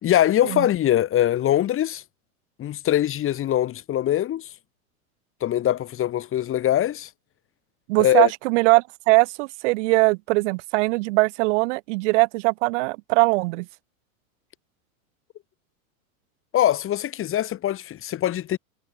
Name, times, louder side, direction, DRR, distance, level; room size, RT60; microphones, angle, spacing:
voice 1, 0.0-2.0 2.6-4.5 5.4-7.1 8.0-8.3 16.5-18.6, left 12 dB, 30° left, 4.8 m, -22 dB
voice 2, 7.9-13.7, right 25 dB, 55° right, 3.6 m, -21 dB
hypercardioid pair, 130°, 42 cm